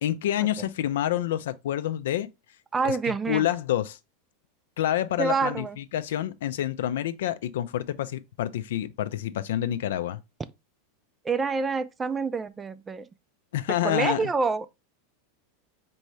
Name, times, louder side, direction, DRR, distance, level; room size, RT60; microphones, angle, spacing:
voice 1, 0.0-2.3 2.8-3.0 3.3-4.0 4.8-10.2 13.5-14.3, left 12 dB, 80° left, 0.4 m, -28 dB
voice 2, 2.7-3.5 5.2-5.8 11.3-13.1 13.8-14.6, right 4 dB, 15° right, 0.3 m, -27 dB
4.5 x 2.7 x 3.1 m
supercardioid pair, 145°, 0 cm